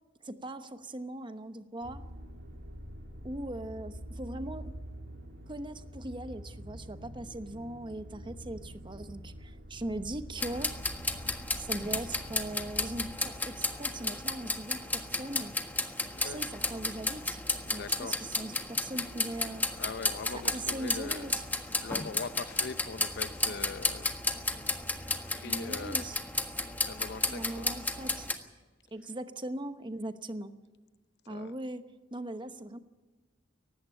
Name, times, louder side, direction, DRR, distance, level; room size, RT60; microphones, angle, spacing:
voice 1, 0.2-2.0 3.2-4.7 5.5-10.7 11.6-15.5 16.2-19.7 20.3-21.4 25.4-26.2 27.3-28.3 28.9-30.5 31.3-31.8 32.1-32.8, right 1 dB, 25° right, 10 dB, 1.0 m, -40 dB
sound 1, 1.8-13.1, equal, 60° right, 2.1 m, -46 dB
sound 2, 10.4-28.3, left 2 dB, 10° left, 1.5 m, -33 dB
voice 2, 17.7-18.2 19.7-21.3 21.8-24.1 24.9-26.1 26.8-27.7 31.3-31.6, left 4 dB, 60° left, 13 dB, 0.7 m, -42 dB
18.5 x 15.5 x 9.0 m, 1.3 s
head